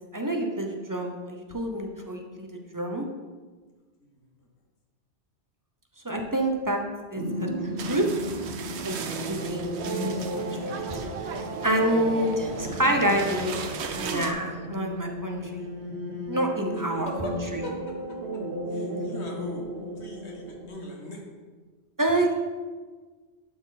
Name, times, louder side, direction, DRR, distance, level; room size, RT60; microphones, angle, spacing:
voice 1, 0.1-2.5 2.7-3.0 6.0-6.8 7.1-7.5 7.9-8.1 8.8-11.3 11.6-13.6 14.0-15.7 16.3-17.6 22.0-22.3, right 1 dB, 20° right, 2 dB, 0.7 m, -28 dB
sound 1, 7.1-20.7, right 1 dB, 55° right, 1.3 m, -34 dB
sound 2, 7.8-14.3, right 5 dB, 80° right, 1.0 m, -37 dB
voice 2, 16.7-17.7 18.1-18.4 18.7-19.6 20.0-21.2, left 2 dB, 85° left, 0 dB, 1.7 m, -39 dB
11.0 x 4.3 x 4.1 m, 1.4 s
omnidirectional pair, 1.1 m